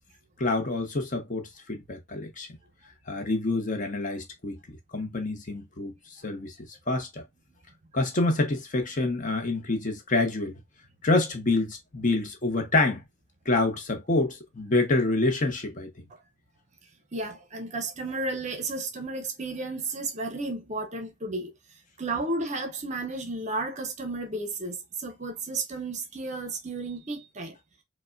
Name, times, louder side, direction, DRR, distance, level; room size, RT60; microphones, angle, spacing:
voice 1, 0.4-2.5 3.1-6.5 6.9-7.2 7.9-10.6 11.0-13.0 13.5-16.0, left 2 dB, 35° left, 0.7 m, -27 dB
voice 2, 17.1-21.5 22.0-27.6, right 2 dB, 35° right, 0.6 m, -33 dB
4.6 x 2.1 x 2.4 m
head